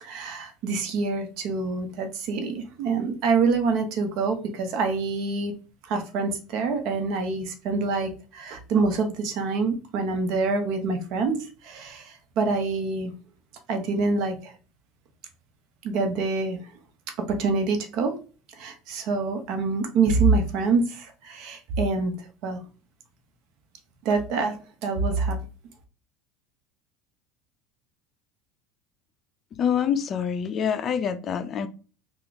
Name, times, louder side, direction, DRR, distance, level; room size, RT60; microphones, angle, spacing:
voice 1, 0.0-5.5 5.9-11.4 11.6-13.1 13.7-14.5 15.8-16.6 17.3-18.1 18.5-22.1 22.4-22.6 24.0-25.4, right 4 dB, 60° right, 0.9 m, -26 dB
voice 2, 29.5-31.7, left 8 dB, 35° left, 0.4 m, -26 dB
3.4 x 2.4 x 3.8 m
supercardioid pair, 120°, 0 cm